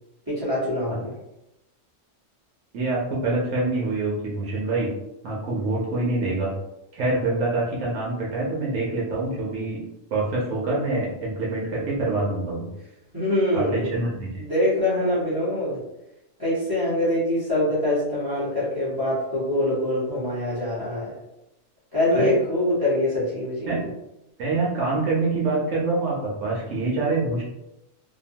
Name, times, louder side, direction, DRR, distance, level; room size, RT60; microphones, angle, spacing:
voice 1, 0.3-1.1 13.1-13.8 14.3-15.8 16.4-21.1 21.9-23.8, left 1 dB, 20° right, -9 dB, 0.9 m, -24 dB
voice 2, 2.7-4.9 5.2-6.5 6.9-9.8 10.1-12.7 13.5-14.3 22.1-22.3 23.7-23.8 24.4-27.4, right 2 dB, 75° right, -5 dB, 1.0 m, -25 dB
2.9 x 2.1 x 2.7 m, 0.90 s
omnidirectional pair, 1.3 m